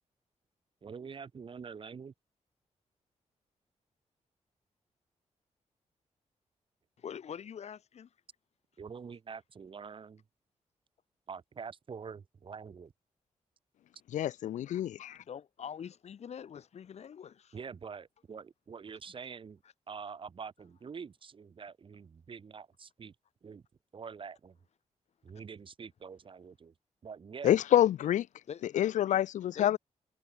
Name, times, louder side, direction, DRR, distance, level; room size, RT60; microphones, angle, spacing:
voice 1, 0.8-2.1 8.8-10.2 11.3-12.9 17.5-19.6 19.9-23.1 23.4-23.6 23.9-24.6 25.2-26.7 27.0-27.6, right 6 dB, 45° right, 3.5 m, -45 dB
voice 2, 7.0-8.1 14.9-17.6 28.5-28.9 29.5-29.8, left 8 dB, 60° left, 2.5 m, -45 dB
voice 3, 14.1-15.2 27.4-28.3 28.7-29.8, left 12 dB, 85° left, 0.4 m, -27 dB
wide cardioid pair, 145°, 12 cm